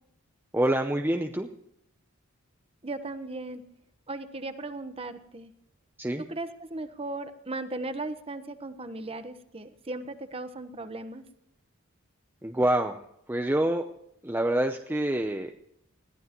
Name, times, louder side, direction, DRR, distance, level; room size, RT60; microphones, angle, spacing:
voice 1, 0.5-1.5 6.0-6.2 12.4-13.0 13.3-13.9 14.2-15.5, right 1 dB, 10° right, 4 dB, 0.6 m, -26 dB
voice 2, 2.8-3.6 4.1-5.5 6.3-11.3, right 2 dB, 25° right, 9 dB, 1.1 m, -37 dB
20.5 x 15.0 x 3.0 m, 0.77 s
head